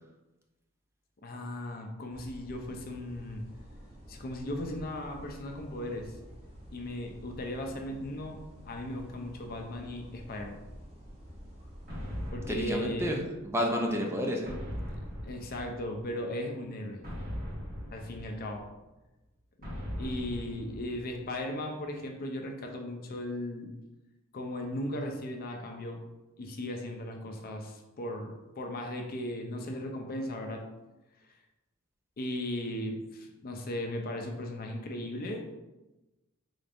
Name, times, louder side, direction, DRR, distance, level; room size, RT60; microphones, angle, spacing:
voice 1, 1.2-3.4 4.1-6.1 6.7-8.4 8.7-10.6 12.3-13.1 15.2-17.0 17.9-18.6 20.0-23.7 24.3-26.0 26.4-30.6 32.2-35.5, left 1 dB, 45° left, 3 dB, 0.5 m, -37 dB
sound 1, 2.1-12.3, equal, 30° right, 0.8 m, -50 dB
sound 2, 11.9-13.6 14.4-16.2 17.0-18.8 19.6-21.4, equal, 45° right, 1.1 m, -40 dB
voice 2, 12.5-14.5, equal, 10° right, 1 dB, 0.4 m, -30 dB
3.9 x 3.4 x 2.5 m, 1.0 s
head